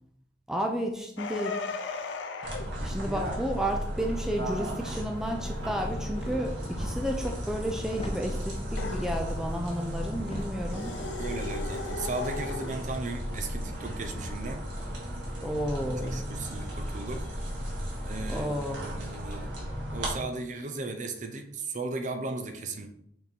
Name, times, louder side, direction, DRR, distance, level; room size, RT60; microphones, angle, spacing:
voice 1, 0.5-1.5 2.8-10.9 15.4-16.2 18.3-19.0, equal, 5° right, 2 dB, 0.5 m, -32 dB
sound 1, 1.2-2.7 8.8-9.1 10.7-12.8, left 3 dB, 85° left, 0.6 m, -36 dB
sound 2, 2.4-20.1, equal, 85° right, 2.0 m, -35 dB
sound 3, 3.3-4.3 5.0-12.8, left 1 dB, 30° left, 0.9 m, -44 dB
voice 2, 11.2-14.6 15.8-17.2 18.1-19.5 19.9-22.9, right 3 dB, 45° right, 6 dB, 0.7 m, -36 dB
6.1 x 3.5 x 4.5 m, 0.72 s
head